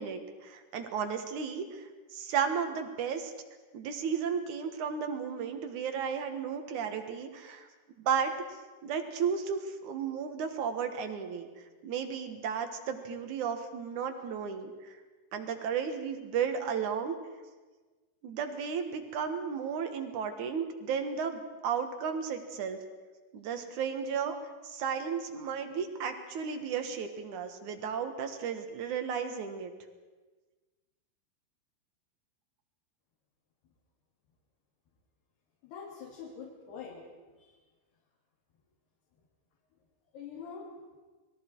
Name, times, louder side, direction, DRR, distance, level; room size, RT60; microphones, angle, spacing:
voice 1, 0.0-3.3 3.7-7.7 8.0-8.3 8.8-15.0 15.3-17.2 18.2-22.8 23.3-24.4 24.6-29.7, right 7 dB, 55° right, 6 dB, 2.5 m, -34 dB
voice 2, 35.6-37.0 37.4-37.5 40.1-40.7, left 6 dB, 70° left, -4 dB, 4.8 m, -44 dB
29.5 x 21.0 x 4.7 m, 1.3 s
omnidirectional pair, 5.0 m